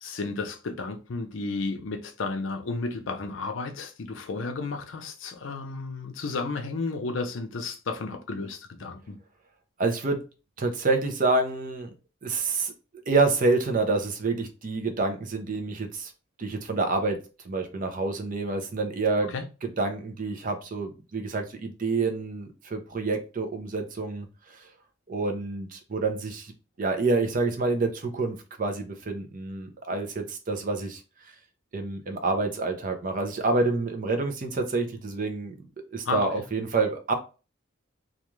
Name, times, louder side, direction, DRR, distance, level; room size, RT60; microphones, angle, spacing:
voice 1, 0.0-9.2 19.3-19.4 36.1-36.3, left 3 dB, 70° left, 0.5 m, -32 dB
voice 2, 9.8-10.2 10.6-11.9 12.2-12.7 13.1-16.1 16.4-17.2 17.4-19.3 19.6-24.7 25.1-31.3 31.7-35.6 35.9-37.1, right 3 dB, 40° right, 0.5 m, -28 dB
2.4 x 2.3 x 3.0 m
head